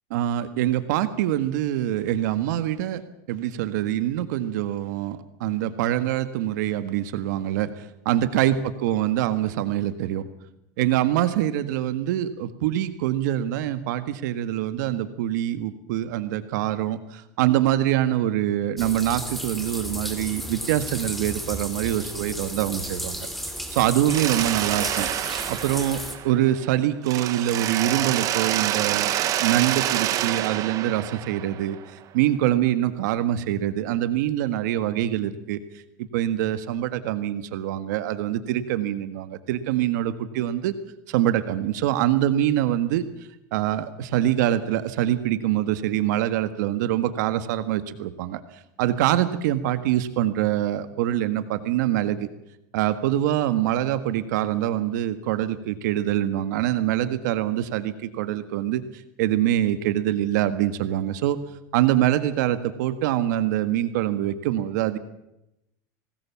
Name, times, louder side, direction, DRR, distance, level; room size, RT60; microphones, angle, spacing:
voice 1, 0.1-3.0 3.3-10.2 10.8-25.1 25.5-26.0 26.2-35.6 36.1-40.7 41.1-43.0 43.5-48.4 48.8-52.3 52.7-61.4 61.7-65.0, right 12 dB, 75° right, 11 dB, 1.7 m, -24 dB
sound 1, 18.8-26.1, equal, ahead, 2.9 m, -34 dB
Mechanisms, 24.1-26.7 27.0-31.9, right 13 dB, 35° right, 1.3 m, -27 dB
24.5 x 19.5 x 7.1 m, 0.85 s
supercardioid pair, 160°, 10 cm